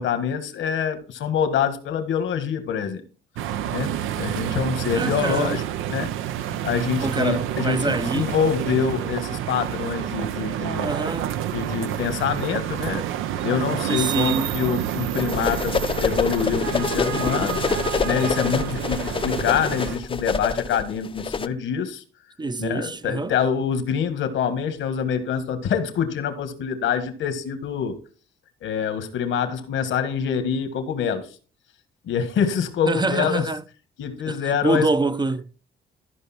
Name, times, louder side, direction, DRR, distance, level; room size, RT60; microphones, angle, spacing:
voice 1, 0.0-3.0 3.7-5.6 5.9-6.1 6.6-10.9 11.5-13.1 13.4-17.6 18.0-22.0 22.6-28.0 28.6-31.3 32.0-33.5 34.0-34.9, left 7 dB, 75° left, 1.6 m, -25 dB
sound 1, 3.4-20.0, right 11 dB, 90° right, 0.6 m, -28 dB
voice 2, 4.9-5.6 7.0-8.3 10.8-11.3 13.9-14.5 22.4-23.3 32.9-33.6 34.3-35.5, right 3 dB, 20° right, 0.5 m, -25 dB
sound 2, 15.2-21.5, left 5 dB, 25° left, 0.6 m, -26 dB
13.5 x 5.2 x 4.3 m
cardioid pair, 90°, 20 cm